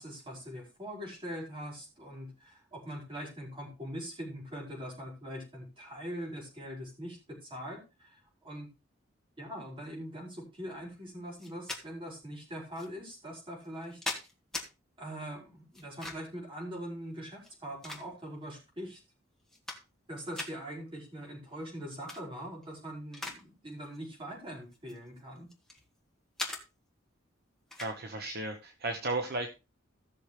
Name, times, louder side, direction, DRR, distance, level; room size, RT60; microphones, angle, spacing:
voice 1, 0.0-8.7 9.4-14.0 15.0-19.0 20.1-25.5, equal, 25° right, -3 dB, 5.1 m, -42 dB
sound 1, 11.4-11.8 12.8-12.9 13.6-14.7 15.7-16.4 17.4-18.4 19.0-19.1 19.4-20.1 20.3-20.5 21.9-22.2 22.6-23.4 23.7-24.0 24.7-25.8 26.4-26.6 27.7-28.0, left 2 dB, 5° left, 1.9 m, -40 dB
voice 2, 27.8-29.5, right 2 dB, 55° right, 4 dB, 1.1 m, -34 dB
16.0 x 6.5 x 3.3 m, 0.28 s
head